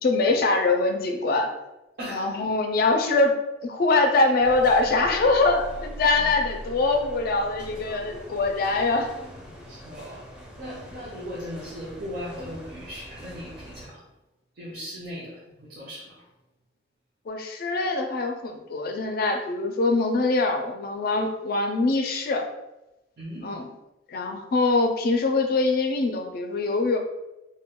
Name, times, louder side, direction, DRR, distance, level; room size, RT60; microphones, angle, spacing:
voice 1, 0.0-1.5 2.1-9.1 17.3-22.5 23.4-23.7 24.1-27.0, left 3 dB, 55° left, 4 dB, 0.4 m, -23 dB
voice 2, 2.0-2.5 6.2-6.3 9.5-10.3 10.6-14.1 14.5-16.3 23.2-23.6, equal, 55° right, -7 dB, 0.6 m, -38 dB
sound 1, 4.4-13.9, equal, 5° right, 0.5 m, -42 dB
2.2 x 2.1 x 3.6 m, 0.97 s
head